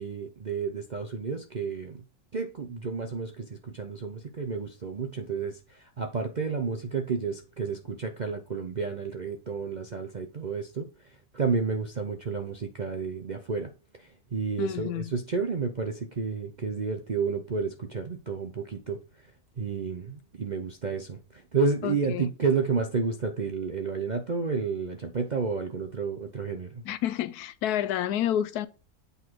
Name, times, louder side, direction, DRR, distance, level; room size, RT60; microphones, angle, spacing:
voice 1, 0.0-2.0 2.3-10.9 11.3-13.7 14.0-19.0 19.6-26.8, right 5 dB, 50° right, 0.5 m, -31 dB
voice 2, 14.6-15.1 21.8-22.3 26.8-28.7, left 10 dB, 85° left, 1.2 m, -29 dB
8.2 x 4.0 x 4.6 m
omnidirectional pair, 1.6 m